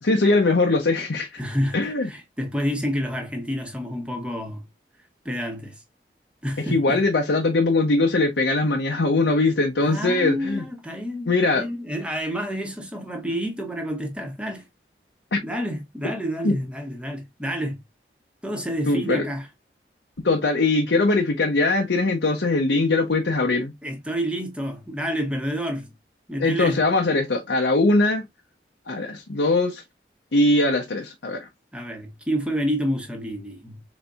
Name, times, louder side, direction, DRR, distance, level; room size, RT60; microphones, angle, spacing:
voice 1, 0.0-1.4 1.7-2.1 6.6-10.6 11.3-11.7 15.3-15.4 16.4-16.6 18.9-19.2 20.2-23.7 26.4-28.2 28.9-29.8 30.3-31.5, left 2 dB, 80° left, 0.8 m, -21 dB
voice 2, 1.4-4.6 5.2-5.8 6.4-7.0 9.8-14.7 15.4-17.8 18.4-19.5 23.8-25.9 26.3-26.8 31.7-33.8, equal, 5° right, 1.0 m, -29 dB
4.3 x 4.0 x 2.3 m
head